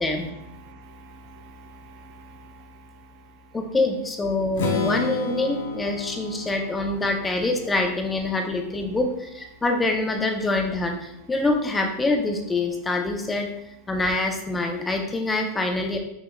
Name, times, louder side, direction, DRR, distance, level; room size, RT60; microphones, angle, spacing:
voice 1, 0.0-3.6 5.9-6.5 9.5-9.6, right 1 dB, 55° right, 6 dB, 0.4 m, -48 dB
voice 2, 3.5-13.5 13.9-16.0, left 2 dB, 15° left, 3 dB, 0.6 m, -25 dB
Strum, 4.6-8.5, left 3 dB, 80° left, 0.6 m, -31 dB
5.5 x 2.9 x 2.2 m, 0.82 s
hypercardioid pair, 120°, 0 cm